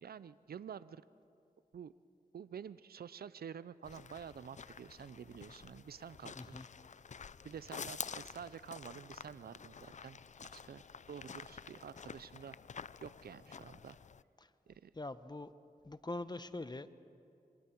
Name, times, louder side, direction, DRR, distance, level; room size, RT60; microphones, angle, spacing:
voice 1, 0.0-1.0 1.7-1.9 2.3-6.6 7.4-10.2 10.4-10.8 11.1-12.6 13.0-14.0 14.7-14.9, right 7 dB, 80° right, 16 dB, 0.5 m, -49 dB
sound 1, 3.8-14.2, left 6 dB, 50° left, 0.4 m, -49 dB
voice 2, 6.4-6.7 14.4-14.5 14.9-15.5 15.8-17.0, left 2 dB, 25° left, 12 dB, 1.0 m, -43 dB
27.0 x 25.0 x 4.5 m, 2.5 s
cardioid pair, 45°, 16 cm